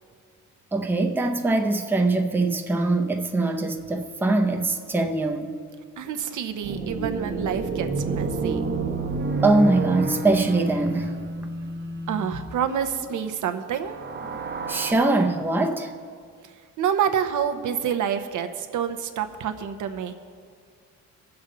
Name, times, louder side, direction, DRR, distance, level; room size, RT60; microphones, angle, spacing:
voice 1, 0.7-5.6 9.4-11.2 14.7-15.9, right 2 dB, 5° right, 0.6 m, -22 dB
voice 2, 6.0-8.6 12.1-14.0 16.8-20.1, right 8 dB, 70° right, 0.8 m, -27 dB
sound 1, 6.6-12.6 13.7-14.9, right 3 dB, 35° right, 0.9 m, -29 dB
20.0 x 7.0 x 3.9 m
cardioid pair, 130°, 31 cm